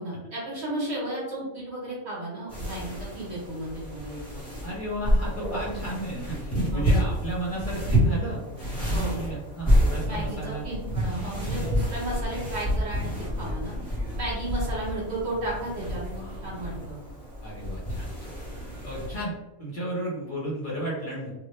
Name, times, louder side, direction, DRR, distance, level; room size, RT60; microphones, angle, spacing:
voice 1, 0.0-4.4 6.7-7.0 8.9-9.2 10.1-13.7 14.2-17.0, right 1 dB, 55° right, -6 dB, 1.4 m, -34 dB
sound 1, 2.5-19.2, equal, 15° left, 1.4 m, -29 dB
voice 2, 4.6-8.4 8.8-10.7 11.2-11.5 16.2-16.4 17.4-18.3 18.8-19.3 19.6-21.4, right 1 dB, 40° left, -6 dB, 1.0 m, -33 dB
2.7 x 2.5 x 3.2 m, 1.1 s
omnidirectional pair, 1.4 m